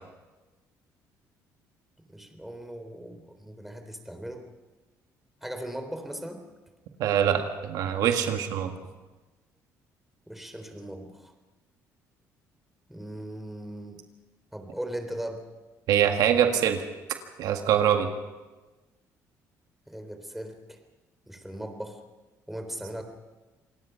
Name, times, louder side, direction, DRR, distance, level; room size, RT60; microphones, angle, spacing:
voice 1, 2.1-4.5 5.4-6.4 10.3-11.3 12.9-14.0 14.5-15.5 19.9-20.8 21.3-22.0 22.5-23.0, right 1 dB, 5° right, 6 dB, 3.7 m, -38 dB
voice 2, 7.0-8.7 15.9-16.8 17.4-18.1, right 9 dB, 75° right, 5 dB, 1.8 m, -23 dB
28.0 x 18.5 x 5.8 m, 1.2 s
cardioid pair, 90°, 7 cm